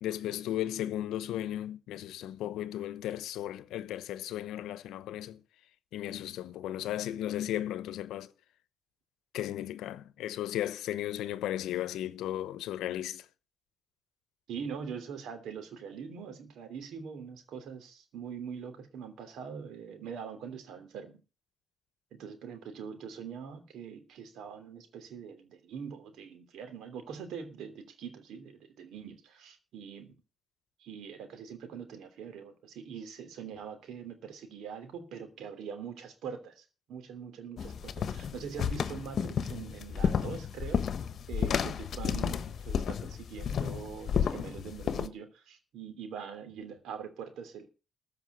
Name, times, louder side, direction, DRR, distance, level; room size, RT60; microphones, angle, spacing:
voice 1, 0.0-5.4 5.9-8.3 9.3-13.3, left 12 dB, 85° left, 0.9 m, -35 dB
voice 2, 14.5-21.2 22.1-30.2 30.8-40.8 41.3-47.7, right 7 dB, 80° right, 3.2 m, -43 dB
sound 1, 37.6-45.1, left 7 dB, 55° left, 1.2 m, -32 dB
14.5 x 5.7 x 8.2 m
cardioid pair, 90°, 0 cm